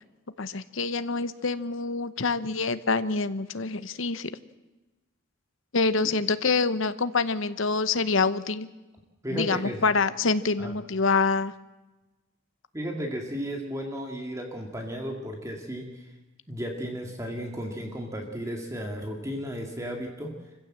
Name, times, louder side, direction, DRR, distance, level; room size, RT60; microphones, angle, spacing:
voice 1, 0.4-4.3 5.7-8.7 9.3-11.5, left 4 dB, 65° left, 13 dB, 0.9 m, -26 dB
voice 2, 9.2-9.8 10.6-10.7 12.7-16.1 16.5-20.4, equal, 15° right, 2 dB, 2.0 m, -34 dB
26.5 x 15.5 x 7.6 m, 1.1 s
head